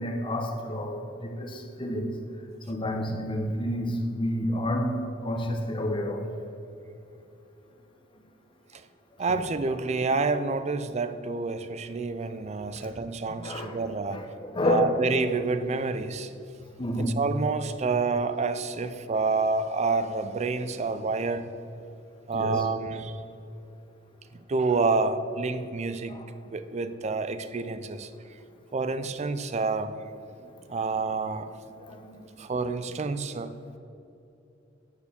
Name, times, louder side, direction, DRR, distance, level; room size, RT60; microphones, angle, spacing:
voice 1, 0.0-2.1 2.7-6.3 12.7-12.9 13.3-14.9 16.8-17.2 22.3-22.6 26.1-26.3 31.8-32.2, left 1 dB, 25° left, 2 dB, 1.0 m, -30 dB
voice 2, 9.2-14.2 14.6-16.3 17.2-21.5 22.3-23.2 24.5-26.1 26.5-28.1 28.7-30.0 30.7-31.5 32.4-33.5, right 4 dB, 35° right, 12 dB, 0.4 m, -28 dB
9.6 x 4.6 x 6.7 m, 2.8 s
head